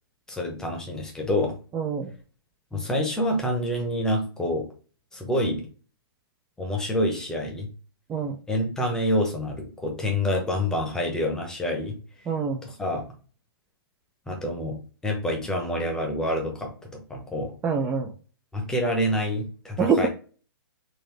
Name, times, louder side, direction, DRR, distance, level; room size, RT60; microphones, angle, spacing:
voice 1, 0.3-1.6 2.7-4.7 5.1-5.7 6.6-7.7 8.5-12.0 12.6-13.1 14.3-17.5 18.5-20.1, left 1 dB, 5° left, 1 dB, 0.8 m, -27 dB
voice 2, 1.7-2.1 8.1-8.3 12.3-12.6 17.6-18.1 19.8-20.1, right 5 dB, 10° right, 3 dB, 0.3 m, -25 dB
3.9 x 2.6 x 3.2 m, 0.36 s
hypercardioid pair, 145°, 13 cm